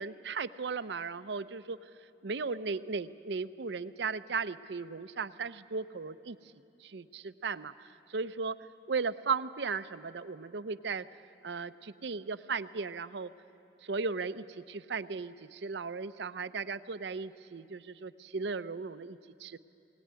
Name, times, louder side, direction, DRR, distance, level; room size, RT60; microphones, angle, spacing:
voice 1, 0.0-1.8 2.2-6.4 6.8-8.6 8.9-11.1 11.4-13.3 13.8-19.6, right 4 dB, 65° right, 14 dB, 0.6 m, -36 dB
21.5 x 18.0 x 9.6 m, 2.8 s
head